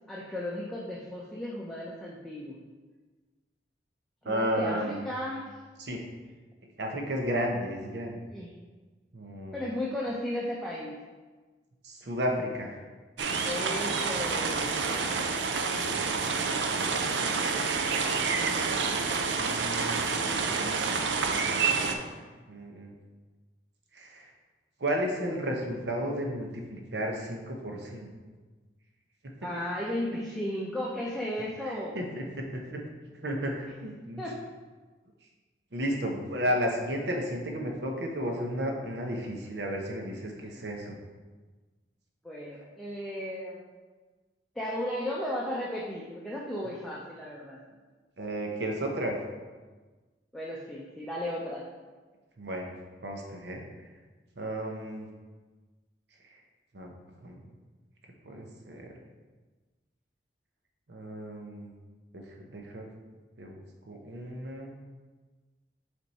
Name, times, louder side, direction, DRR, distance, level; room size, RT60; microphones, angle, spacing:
voice 1, 0.1-2.6 4.2-5.5 8.3-8.5 9.5-11.0 13.4-15.2 29.4-32.0 34.2-34.4 40.4-40.5 42.2-43.6 44.6-47.6 50.3-51.7, left 1 dB, ahead, -6 dB, 0.6 m, -35 dB
voice 2, 4.2-5.1 5.8-6.0 6.8-8.2 9.1-9.6 11.8-12.8 15.0-17.2 19.0-20.0 20.5-22.1 22.5-22.9 23.9-24.3 24.8-28.1 29.2-29.3 31.6-32.8 33.2-34.2 35.7-41.0 48.2-49.2 52.4-52.7 53.0-53.9 54.4-55.1 56.2-56.4 56.7-56.9 57.2-57.4 58.2-59.0 60.9-61.7 62.1-62.9 63.4-64.8, equal, 70° right, 1 dB, 1.0 m, -34 dB
sound 1, 13.2-21.9, right 4 dB, 85° right, 0.5 m, -28 dB
7.3 x 3.5 x 4.2 m, 1.3 s
head